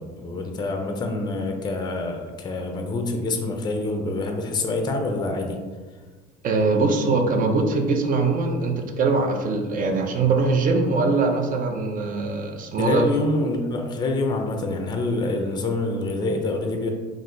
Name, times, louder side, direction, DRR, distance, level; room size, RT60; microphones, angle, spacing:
voice 1, 0.0-5.6 12.8-16.9, left 2 dB, 20° left, 3 dB, 0.4 m, -26 dB
voice 2, 6.4-13.1, right 3 dB, 45° right, 5 dB, 0.5 m, -22 dB
2.5 x 2.4 x 3.6 m, 1.4 s
supercardioid pair, 90°, 20 cm